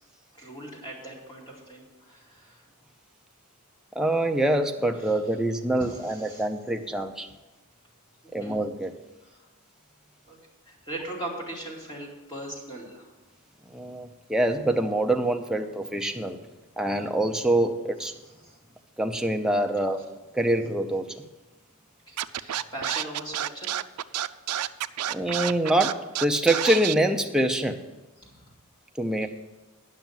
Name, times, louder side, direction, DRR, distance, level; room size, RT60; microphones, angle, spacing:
voice 1, 0.4-2.6 5.0-5.2 5.8-6.5 8.2-8.6 9.2-9.5 10.3-10.4 10.6-13.1 18.4-18.6 22.1-23.7 28.2-28.5, right 1 dB, 20° left, -4 dB, 2.8 m, -40 dB
voice 2, 4.0-7.3 8.3-8.9 13.7-16.4 16.8-18.1 19.0-20.0 20.3-21.2 25.1-27.8 29.0-29.3, right 1 dB, 5° right, 3 dB, 0.6 m, -25 dB
Scratching (performance technique), 22.2-26.9, right 12 dB, 85° right, 0.4 m, -29 dB
10.5 x 6.0 x 7.4 m, 1.1 s
head